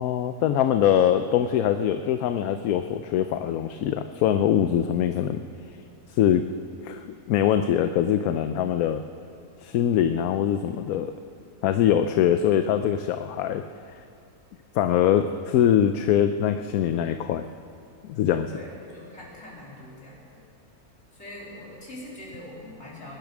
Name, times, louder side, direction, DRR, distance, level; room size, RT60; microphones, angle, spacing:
voice 1, 0.0-5.4 6.1-6.5 6.8-9.0 9.6-11.1 11.6-13.6 14.7-17.5 18.1-18.5, left 10 dB, 75° left, 9 dB, 1.0 m, -23 dB
voice 2, 18.5-20.4 21.1-23.2, left 1 dB, 45° left, -5 dB, 3.9 m, -43 dB
20.5 x 10.5 x 6.1 m, 2.4 s
omnidirectional pair, 1.6 m